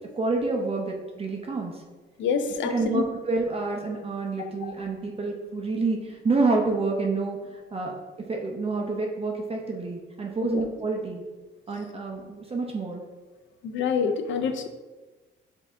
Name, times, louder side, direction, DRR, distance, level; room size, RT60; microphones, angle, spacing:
voice 1, 0.1-1.8 2.6-11.2 11.7-13.0, right 3 dB, 30° right, 0 dB, 0.7 m, -28 dB
voice 2, 2.2-3.1 4.6-4.7 10.5-10.7 13.6-14.7, left 6 dB, 70° left, 7 dB, 0.5 m, -27 dB
5.3 x 2.8 x 3.6 m, 1.3 s
cardioid pair, 90°, 20 cm